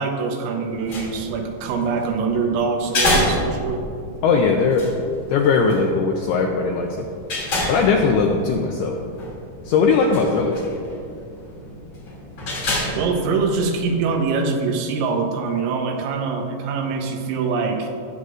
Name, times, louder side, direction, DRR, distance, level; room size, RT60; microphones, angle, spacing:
voice 1, 0.0-3.8 12.9-17.9, right 4 dB, 85° right, 3 dB, 3.3 m, -24 dB
sound 1, 0.6-14.1, left 1 dB, 40° left, 3.0 m, -29 dB
voice 2, 4.2-4.9 5.3-7.1 7.7-9.0 9.6-10.6, left 4 dB, 85° left, 1 dB, 2.2 m, -19 dB
18.0 x 7.8 x 2.5 m, 2.5 s
omnidirectional pair, 5.2 m